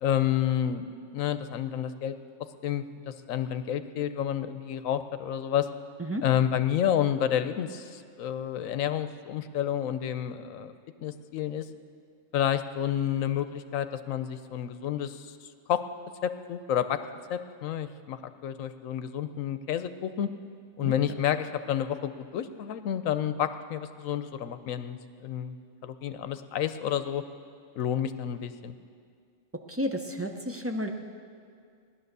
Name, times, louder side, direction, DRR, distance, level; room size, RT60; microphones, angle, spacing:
voice 1, 0.0-2.1 2.6-5.7 6.2-10.7 11.0-11.6 12.3-15.3 15.7-15.8 16.2-17.0 17.3-18.2 18.4-20.3 20.8-25.6 25.8-27.2 27.8-28.8, left 10 dB, 90° left, 11 dB, 1.1 m, -30 dB
voice 2, 29.7-30.9, equal, 15° right, 3 dB, 0.6 m, -31 dB
15.5 x 10.5 x 6.7 m, 2.2 s
omnidirectional pair, 1.4 m